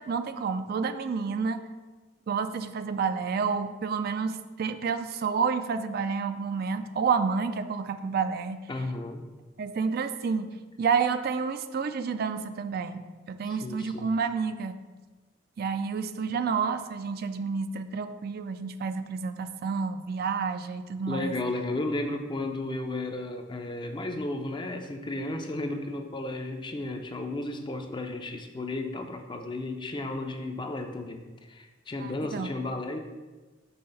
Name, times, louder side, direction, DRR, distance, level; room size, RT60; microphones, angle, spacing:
voice 1, 0.0-1.6 2.3-8.6 9.6-10.5 10.8-13.0 13.3-14.7 15.6-21.3 32.0-32.5, right 5 dB, 50° right, 9 dB, 0.3 m, -29 dB
voice 2, 8.7-9.3 13.4-14.1 21.1-33.0, left 2 dB, 25° left, 5 dB, 0.5 m, -34 dB
5.6 x 3.4 x 5.5 m, 1.3 s
head